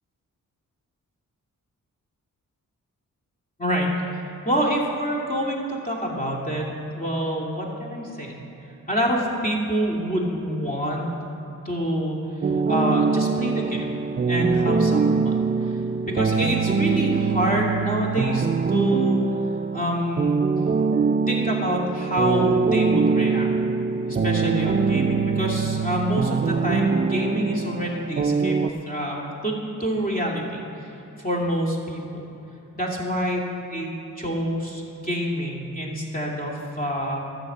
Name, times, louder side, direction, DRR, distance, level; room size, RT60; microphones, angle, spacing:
voice 1, 4.4-8.4 8.9-11.1 11.6-12.2 12.7-13.9 14.3-15.3 15.6-15.7 16.1-19.2 19.7-20.4 21.3-23.5 24.1-30.9 31.2-32.2 32.7-33.4 33.7-33.9 34.2-37.2, equal, 25° left, -3 dB, 2.7 m, -26 dB
sound 1, 12.4-28.7, right 5 dB, 30° right, 0.4 m, -23 dB
12.5 x 6.6 x 8.0 m, 3.0 s
cardioid pair, 85°, 33 cm